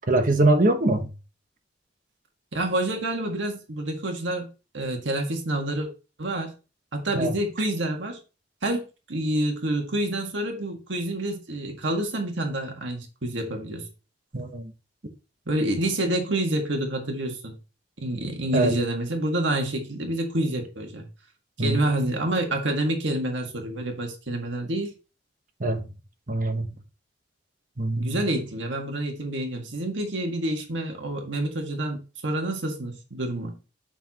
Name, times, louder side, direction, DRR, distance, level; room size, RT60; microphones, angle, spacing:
voice 1, 0.1-1.1 7.1-7.3 14.3-14.7 18.5-18.7 21.6-21.9 25.6-25.8 26.3-26.7 27.8-28.2, right 2 dB, 45° right, 1.0 m, -23 dB
voice 2, 2.5-4.5 4.7-5.9 6.2-6.5 6.9-8.2 8.6-13.9 15.5-17.6 18.0-21.1 21.6-24.9 28.0-32.0 32.2-33.6, right 1 dB, 80° right, 1.7 m, -28 dB
7.2 x 5.7 x 2.9 m
head